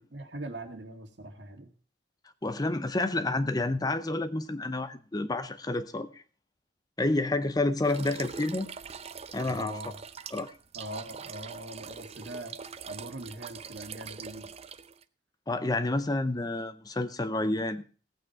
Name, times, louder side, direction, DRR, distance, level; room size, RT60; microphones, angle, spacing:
voice 1, 0.1-1.7 9.4-10.0 10.7-12.6 12.9-14.5, right 1 dB, 70° right, 5 dB, 2.1 m, -41 dB
voice 2, 2.4-6.2 7.0-8.7 9.3-9.8 10.3-10.5 15.5-17.8, left 2 dB, 20° left, 11 dB, 0.7 m, -29 dB
sound 1, 7.8-15.0, right 6 dB, 35° right, 0.6 m, -43 dB
16.0 x 8.6 x 4.6 m, 0.39 s
head